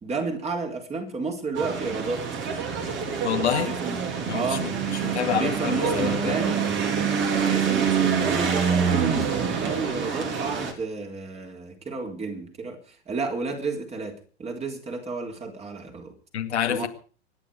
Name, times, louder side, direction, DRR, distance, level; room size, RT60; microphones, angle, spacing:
voice 1, 0.0-2.3 3.4-4.7 5.0-6.7 7.3-16.1 16.7-16.9, right 4 dB, 20° right, 4.0 m, -32 dB
sound 1, 1.6-10.7, right 6 dB, 35° right, 4.1 m, -26 dB
voice 2, 3.2-3.8 4.3-6.4 16.3-16.9, left 9 dB, 70° left, 2.3 m, -27 dB
25.5 x 10.5 x 5.1 m
figure-of-eight pair, 100°, 34 cm